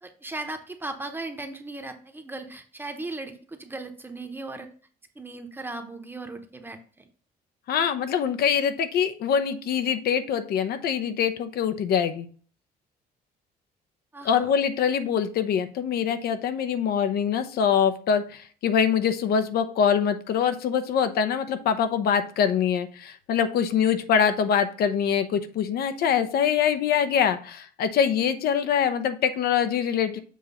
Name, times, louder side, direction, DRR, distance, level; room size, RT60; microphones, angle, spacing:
voice 1, 0.0-4.7 5.2-6.8 14.1-14.5, right 2 dB, 10° right, 6 dB, 1.0 m, -37 dB
voice 2, 7.7-12.3 14.2-30.2, left 7 dB, 65° left, 9 dB, 0.8 m, -24 dB
7.3 x 3.0 x 5.5 m, 0.42 s
cardioid pair, 110°, 17 cm